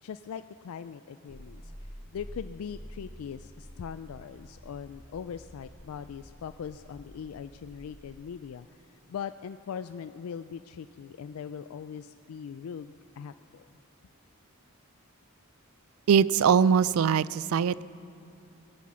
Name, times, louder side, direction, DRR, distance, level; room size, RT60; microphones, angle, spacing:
voice 1, 0.0-13.7, left 7 dB, 90° left, 11 dB, 0.3 m, -41 dB
sound 1, 1.3-8.1, equal, 35° left, 2.5 m, -48 dB
voice 2, 16.1-17.8, right 7 dB, 80° right, 19 dB, 0.3 m, -22 dB
21.0 x 10.0 x 6.2 m, 2.6 s
head